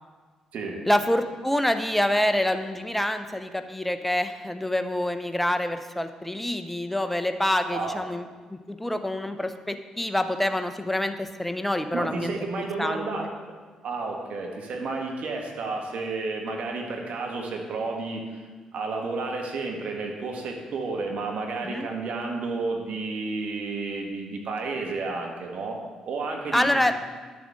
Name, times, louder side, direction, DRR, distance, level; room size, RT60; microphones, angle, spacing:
voice 1, 0.9-12.3 12.8-13.1 21.6-21.9 26.5-26.9, left 1 dB, 5° left, 8 dB, 0.7 m, -26 dB
voice 2, 7.7-8.0 11.9-13.3 13.8-18.4 18.7-25.8 26.0-26.6, right 3 dB, 55° right, 1 dB, 1.4 m, -31 dB
10.0 x 7.1 x 3.6 m, 1.4 s
figure-of-eight pair, 40°, 3 cm